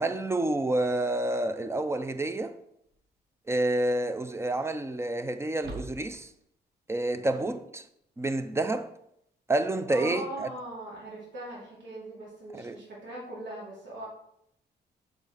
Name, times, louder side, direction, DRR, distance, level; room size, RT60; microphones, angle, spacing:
voice 1, 0.0-2.6 3.5-6.3 6.9-7.8 8.2-8.9 9.5-10.5 12.5-12.8, right 2 dB, 15° right, 0.5 m, -29 dB
sound 1, 2.8-3.3 3.6-3.7 5.5-6.4, right 1 dB, 65° right, 1.3 m, -44 dB
voice 2, 7.1-7.6 9.9-14.1, right 1 dB, 85° right, 2.7 m, -40 dB
6.0 x 4.4 x 5.0 m
cardioid pair, 110°, 18 cm